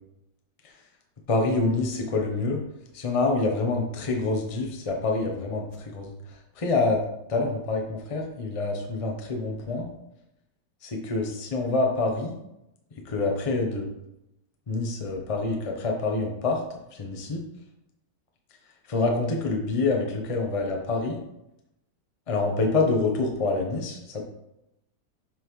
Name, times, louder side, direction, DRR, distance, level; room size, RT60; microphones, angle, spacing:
voice 1, 1.3-2.6 2.9-7.0 7.3-9.9 10.9-12.4 13.0-13.9 14.7-16.6 16.9-17.4 18.9-21.2 22.3-24.2, left 3 dB, 25° left, 1 dB, 0.8 m, -26 dB
7.5 x 5.5 x 3.2 m, 0.86 s
omnidirectional pair, 1.8 m